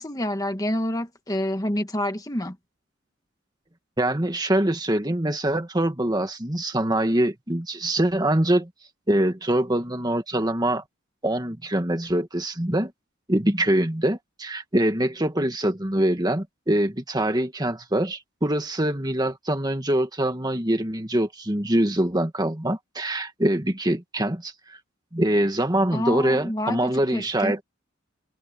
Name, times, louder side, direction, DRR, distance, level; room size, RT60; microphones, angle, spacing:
voice 1, 0.0-2.6 25.9-27.5, left 1 dB, 20° left, 1.9 m, -28 dB
voice 2, 4.0-8.7 9.1-10.8 11.2-12.9 13.3-24.8 25.1-27.6, right 1 dB, 20° right, 1.8 m, -24 dB
head